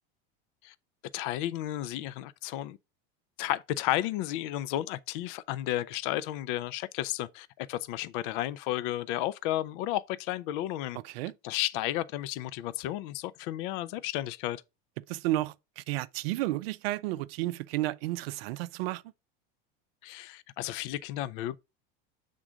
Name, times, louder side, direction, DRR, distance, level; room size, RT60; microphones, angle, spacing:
voice 1, 1.1-2.8 3.4-11.0 11.4-14.6 20.0-21.6, left 14 dB, 60° left, 0.5 m, -33 dB
voice 2, 15.1-19.0, right 16 dB, 80° right, 0.5 m, -32 dB
7.3 x 3.7 x 4.9 m
supercardioid pair, 160°, 30 cm